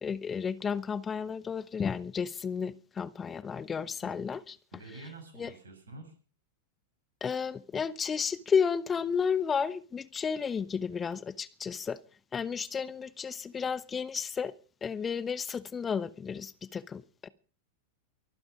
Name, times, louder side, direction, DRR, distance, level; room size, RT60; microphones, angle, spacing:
voice 1, 0.0-4.6 5.4-5.5 7.2-12.0 12.3-14.5 14.8-17.3, left 6 dB, 20° left, 0.8 m, -32 dB
voice 2, 4.7-6.1, right 2 dB, 70° right, 6.5 m, -47 dB
24.0 x 9.8 x 5.1 m
figure-of-eight pair, 90°, 0 cm